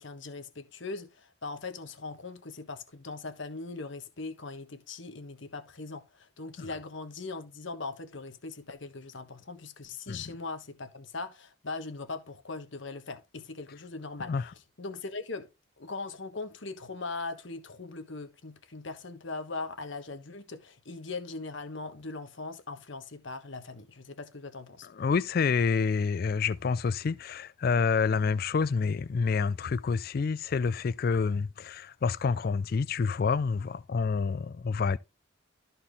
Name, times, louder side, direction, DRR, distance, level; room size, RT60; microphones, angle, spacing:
voice 1, 0.0-14.5 14.8-15.5 15.8-24.9, left 3 dB, 60° left, 1.3 m, -40 dB
voice 2, 24.8-35.0, left 5 dB, 45° left, 0.3 m, -28 dB
13.0 x 4.4 x 3.5 m
head